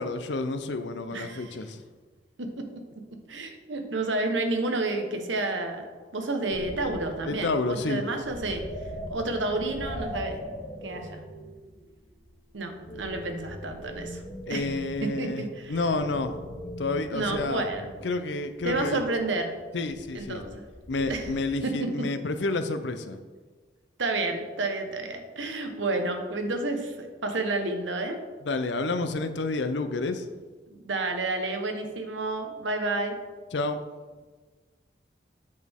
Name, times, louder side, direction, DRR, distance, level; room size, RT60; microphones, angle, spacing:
voice 1, 0.0-1.8 7.2-8.0 14.5-15.4 15.7-16.4 16.8-17.7 18.0-19.0 19.7-20.4 20.9-23.2 28.5-30.3 33.5-33.8, left 3 dB, 75° left, 9 dB, 0.6 m, -29 dB
voice 2, 1.1-1.6 2.4-2.5 3.3-5.8 6.1-8.6 9.1-10.4 10.8-11.2 12.5-14.2 14.5-14.7 15.0-15.8 17.1-17.9 18.6-19.5 20.1-20.6 21.1-21.2 21.6-21.7 24.0-28.2 30.7-33.2, right 2 dB, 85° right, 5 dB, 1.0 m, -30 dB
sound 1, 6.5-7.8 8.2-15.3 15.6-21.5, equal, 45° left, 2.1 m, -41 dB
8.4 x 6.3 x 3.6 m, 1.4 s
head